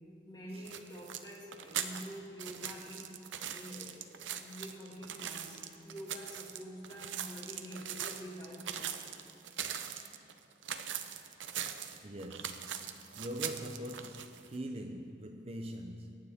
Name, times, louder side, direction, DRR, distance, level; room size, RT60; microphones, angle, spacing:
voice 1, 0.2-3.2 3.5-9.2, equal, 20° left, 2.1 m, -47 dB
sound 1, 0.6-14.6, right 9 dB, 85° right, 0.7 m, -41 dB
voice 2, 12.0-16.1, right 1 dB, 30° right, 0.6 m, -43 dB
23.5 x 9.6 x 3.6 m
head